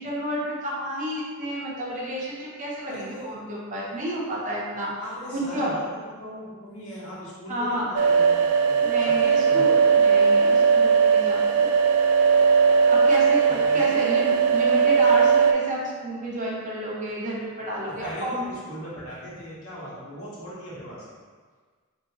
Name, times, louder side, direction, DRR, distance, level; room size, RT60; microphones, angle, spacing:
voice 1, 0.0-4.9 5.3-5.7 7.5-7.9 8.8-11.7 12.9-18.4, equal, 35° right, -5 dB, 0.7 m, -31 dB
voice 2, 2.9-3.3 5.0-5.8 6.2-9.9 13.6-14.1 17.9-21.0, equal, 70° left, -7 dB, 1.1 m, -39 dB
sound 1, 7.9-15.5, right 6 dB, 85° right, 0.3 m, -19 dB
3.3 x 2.7 x 2.8 m, 1.5 s
head